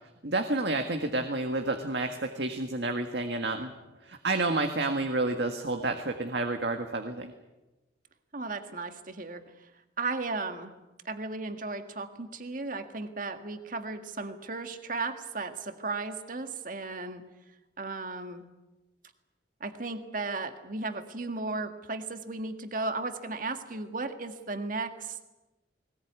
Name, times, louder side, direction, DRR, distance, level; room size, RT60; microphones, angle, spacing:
voice 1, 0.2-3.7 4.1-7.3, right 2 dB, 70° right, 5 dB, 1.7 m, -30 dB
voice 2, 8.3-9.7 10.0-10.7 11.1-17.3 17.8-18.5 19.6-25.2, right 3 dB, 50° right, 7 dB, 1.9 m, -35 dB
20.5 x 19.5 x 9.6 m, 1.1 s
head